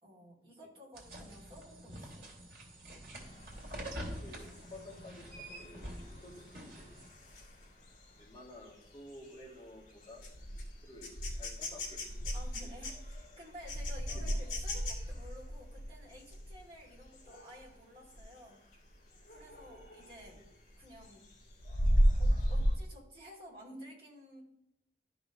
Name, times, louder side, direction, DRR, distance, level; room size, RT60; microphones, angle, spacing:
voice 1, 0.0-2.4 12.3-18.6 19.3-20.4 20.8-21.3 22.2-24.4, equal, 30° right, -5 dB, 2.7 m, -53 dB
sound 1, 0.9-7.1, right 1 dB, 55° right, 2.9 m, -46 dB
sound 2, 3.1-17.7 18.1-18.4 18.7-20.4 20.8-22.8, equal, 45° left, 2.7 m, -35 dB
voice 2, 3.9-7.0 8.2-12.3 12.6-12.7 14.1-14.3 20.3-20.5, left 1 dB, 20° left, -6 dB, 2.8 m, -53 dB
13.0 x 5.6 x 3.0 m, 0.79 s
head